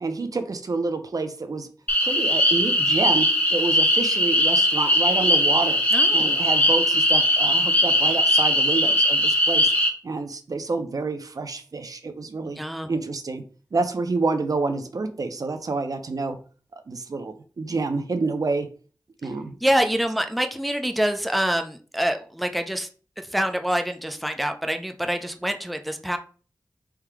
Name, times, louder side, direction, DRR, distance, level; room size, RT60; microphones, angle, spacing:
voice 1, 0.0-1.7 2.0-5.8 6.1-9.7 10.0-12.6 12.9-13.4 13.7-16.4 16.9-18.7 19.2-19.6, right 3 dB, 60° right, 8 dB, 0.6 m, -28 dB
sound 1, 1.9-9.9, equal, 25° left, 1.3 m, -20 dB
voice 2, 5.9-6.4 12.6-12.9 19.6-22.9 23.2-26.2, equal, ahead, 6 dB, 0.5 m, -26 dB
3.6 x 2.8 x 4.7 m, 0.39 s
wide cardioid pair, 70°, 7 cm